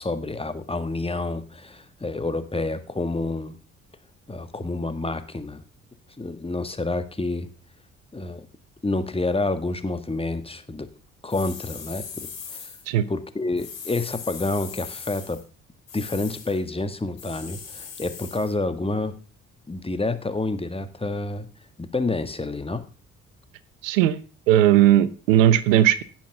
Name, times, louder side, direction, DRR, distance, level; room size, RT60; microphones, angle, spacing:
voice 1, 0.0-3.6 4.3-5.6 6.2-7.5 8.1-8.4 8.8-10.9 11.2-12.7 13.1-15.4 15.9-19.2 19.7-21.5 21.8-22.8, left 2 dB, 15° left, 10 dB, 1.6 m, -28 dB
sound 1, 11.3-12.8 13.6-15.4 15.9-16.6 17.2-18.5, left 6 dB, 85° left, 2.3 m, -39 dB
voice 2, 23.8-24.2 24.5-26.0, right 12 dB, 70° right, 17 dB, 0.9 m, -17 dB
16.5 x 6.1 x 5.8 m, 0.38 s
figure-of-eight pair, 45°, 40 cm